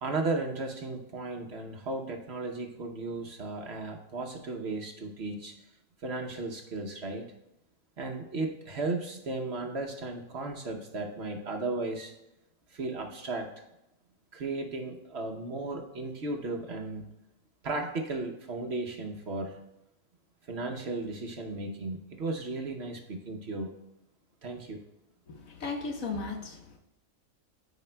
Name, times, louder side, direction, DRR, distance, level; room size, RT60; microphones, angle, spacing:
voice 1, 0.0-5.5 6.0-7.2 8.0-12.1 12.7-13.5 14.3-17.1 17.6-19.6 20.5-23.7 24.4-24.8, right 3 dB, 50° right, 3 dB, 0.9 m, -35 dB
voice 2, 25.3-26.8, left 4 dB, 65° left, 4 dB, 1.4 m, -36 dB
13.0 x 5.0 x 2.2 m, 0.90 s
omnidirectional pair, 1.5 m